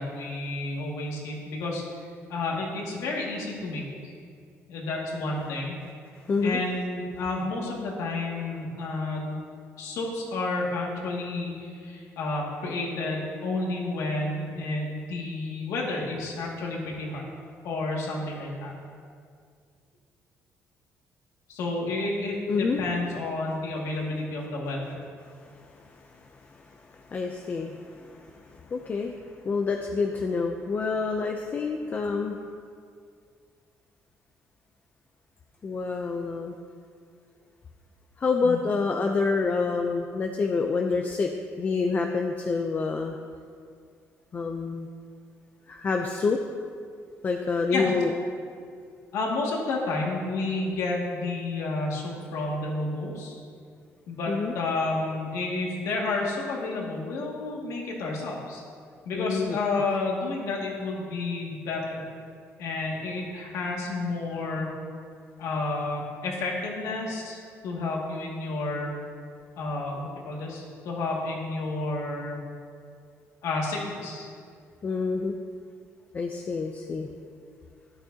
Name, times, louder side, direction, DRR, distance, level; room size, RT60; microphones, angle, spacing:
voice 1, 0.0-1.8 2.3-4.1 4.7-5.8 6.4-9.4 9.8-17.2 17.6-18.7 21.5-25.0 38.4-38.6 47.7-47.9 49.1-53.4 54.1-58.6 59.1-62.0 62.6-64.7 65.4-68.9 69.6-72.4 73.4-74.3, left 2 dB, 85° left, -3 dB, 2.2 m, -30 dB
voice 2, 6.2-6.6 22.5-22.8 25.2-32.4 35.6-36.5 38.2-41.3 41.6-43.2 44.3-44.9 45.7-46.4 47.2-48.1 54.3-54.5 59.1-59.6 74.8-75.4 76.1-77.1, left 4 dB, 35° left, 3 dB, 0.5 m, -28 dB
12.5 x 10.5 x 2.8 m, 2.2 s
cardioid pair, 135°, 5 cm